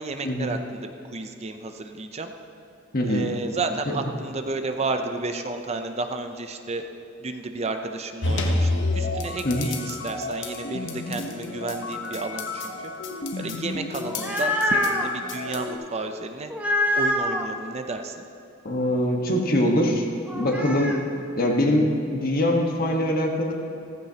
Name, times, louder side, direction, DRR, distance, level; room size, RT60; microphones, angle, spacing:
voice 1, 0.0-2.3 3.0-6.8 7.2-12.7 13.4-16.5 17.0-18.2, right 3 dB, 35° right, 6 dB, 0.6 m, -32 dB
voice 2, 2.9-3.3 9.4-9.7 18.6-20.1 20.3-21.0 21.4-23.5, left 1 dB, 50° left, 1 dB, 1.4 m, -23 dB
sound 1, 8.2-15.7, left 2 dB, 65° left, 1.1 m, -30 dB
sound 2, 14.0-15.1 16.5-17.5 20.3-21.0, left 1 dB, 5° right, 0.8 m, -25 dB
15.0 x 15.0 x 2.9 m, 2.8 s
head